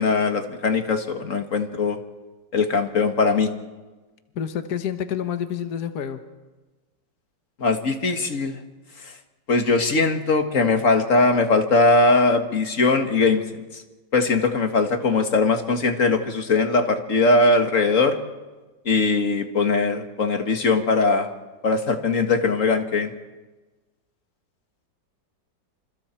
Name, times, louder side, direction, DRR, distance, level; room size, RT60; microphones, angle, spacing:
voice 1, 0.0-2.0 2.5-3.5 7.6-8.6 9.0-9.1 9.5-13.8 14.1-18.2 18.9-21.3 21.6-23.1, left 3 dB, 45° left, 6 dB, 2.1 m, -20 dB
voice 2, 4.3-6.2, left 8 dB, 60° left, 8 dB, 1.7 m, -28 dB
28.5 x 27.5 x 4.5 m, 1.2 s
omnidirectional pair, 1.9 m